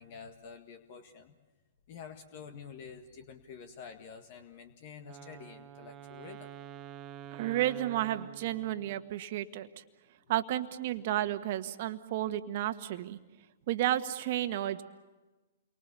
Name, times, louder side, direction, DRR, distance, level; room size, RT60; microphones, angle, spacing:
voice 1, 0.0-1.3 1.9-6.5, left 6 dB, 50° left, 7 dB, 1.8 m, -48 dB
Wind instrument woodwind instrument, 5.0-9.2, right 10 dB, 30° right, 1.1 m, -48 dB
voice 2, 7.3-9.7 10.3-13.2 13.7-14.8, right 13 dB, 50° right, 8 dB, 1.6 m, -32 dB
29.0 x 24.0 x 6.9 m, 1.1 s
hypercardioid pair, 120°, 0 cm